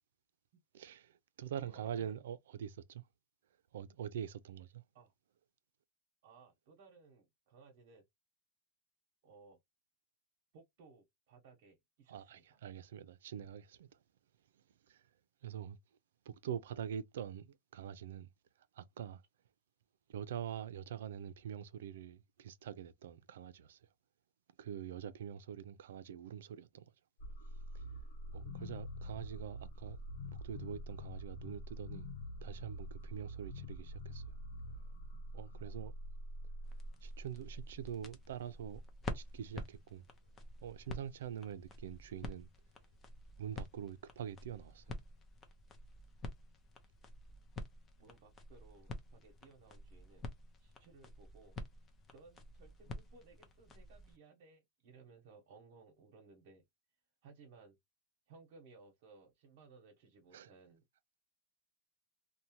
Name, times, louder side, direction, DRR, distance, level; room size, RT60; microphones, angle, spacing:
voice 1, 0.7-3.0 3.7-4.8 12.1-13.9 14.9-15.0 15.4-15.8 16.3-18.3 18.8-19.2 20.1-23.8 24.6-26.8 27.7-27.8 28.3-30.0 30.4-32.1 32.4-34.2 35.3-35.9 37.0-38.8 39.1-40.1 40.6-42.5 43.4-44.8 60.3-60.5, right 9 dB, 85° right, 0.4 m, -45 dB
voice 2, 1.6-2.2 4.9-5.1 6.2-8.1 9.2-9.6 10.5-12.6 48.0-50.3 50.6-51.6 52.1-56.6 57.2-57.8 58.3-60.8, right 4 dB, 55° right, 0.9 m, -61 dB
sound 1, 27.2-38.1, equal, 75° left, 0.9 m, -46 dB
sound 2, 36.6-54.2, left 2 dB, 20° left, 0.5 m, -49 dB
2.6 x 2.1 x 2.9 m
supercardioid pair, 160°, 0 cm